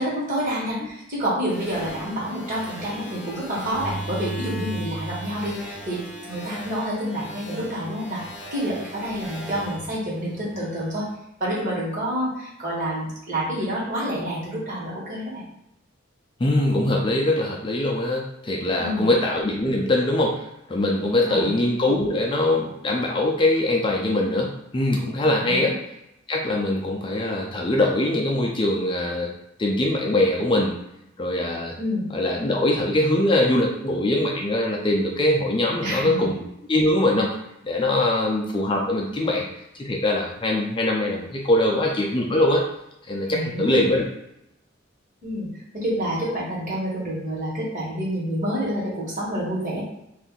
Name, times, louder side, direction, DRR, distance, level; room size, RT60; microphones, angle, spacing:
voice 1, 0.0-8.2 8.5-11.0 11.4-15.4 18.8-19.1 21.0-21.5 25.4-25.7 31.8-32.0 35.8-36.3 43.3-43.8 45.2-45.5 45.7-49.8, equal, 40° right, -6 dB, 1.4 m, -28 dB
sound 1, 1.5-10.9, equal, 10° right, 0.7 m, -37 dB
voice 2, 16.4-25.8 26.3-29.3 29.6-30.7 31.2-31.7 32.1-37.3 37.6-39.5 39.8-42.6 43.1-44.1, left 1 dB, 25° left, -1 dB, 0.4 m, -22 dB
2.7 x 2.5 x 3.7 m, 0.83 s
head